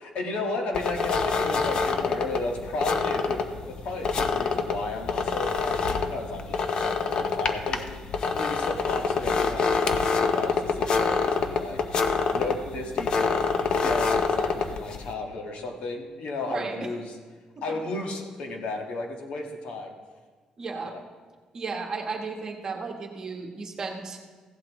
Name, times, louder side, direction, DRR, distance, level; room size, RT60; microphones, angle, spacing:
voice 1, 0.0-7.8 8.2-11.8 12.3-17.2 17.6-19.9 20.8-21.0, left 2 dB, 70° left, 3 dB, 1.5 m, -34 dB
sound 1, 0.7-15.1, left 5 dB, 45° left, 0.7 m, -26 dB
voice 2, 16.4-16.8 17.7-17.8 20.6-20.9 21.5-24.2, right 4 dB, 30° right, 2 dB, 1.2 m, -34 dB
15.5 x 11.5 x 3.0 m, 1.5 s
cardioid pair, 170°, 2 cm